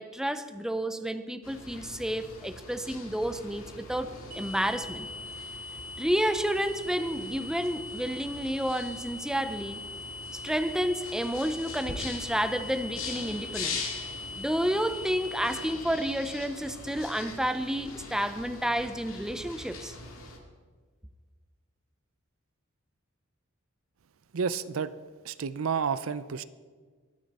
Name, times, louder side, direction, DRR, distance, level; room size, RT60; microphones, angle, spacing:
voice 1, 0.0-5.1 6.0-9.8 10.3-13.9 14.3-19.9, equal, 5° right, 10 dB, 0.5 m, -30 dB
sound 1, 1.4-20.4, left 3 dB, 75° left, 2.2 m, -42 dB
sound 2, 4.3-15.7, left 2 dB, 40° right, 1.5 m, -41 dB
voice 2, 24.3-24.9 25.2-26.4, right 6 dB, 70° right, 15 dB, 0.5 m, -30 dB
22.0 x 9.5 x 4.2 m, 1.5 s
head